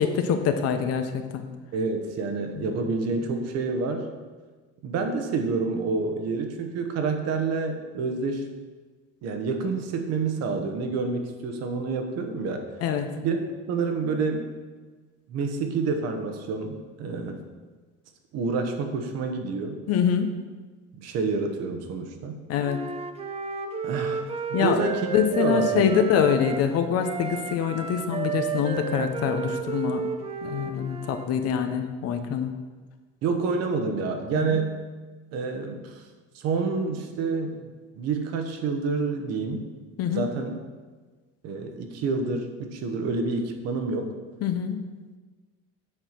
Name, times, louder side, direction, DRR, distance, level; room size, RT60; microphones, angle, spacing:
voice 1, 0.0-1.5 2.6-2.7 12.8-13.0 19.9-20.3 22.5-22.8 24.5-24.8 25.1-30.0 30.4-32.5 34.3-34.6 40.0-40.2 44.4-44.8, left 8 dB, 55° left, 7 dB, 0.8 m, -25 dB
voice 2, 1.7-4.1 4.8-8.5 9.2-12.7 13.1-13.4 13.7-14.5 15.3-17.4 18.3-19.8 20.9-22.4 23.8-24.2 24.6-25.1 25.4-25.9 33.2-34.8 35.3-36.0 36.3-37.7 38.0-39.7 40.1-40.6 41.4-44.1, right 4 dB, 60° right, 5 dB, 1.1 m, -28 dB
Wind instrument woodwind instrument, 22.6-26.7 27.0-31.3, right 7 dB, 20° right, 0.5 m, -32 dB
7.7 x 4.6 x 5.8 m, 1.4 s
cardioid pair, 145°, 30 cm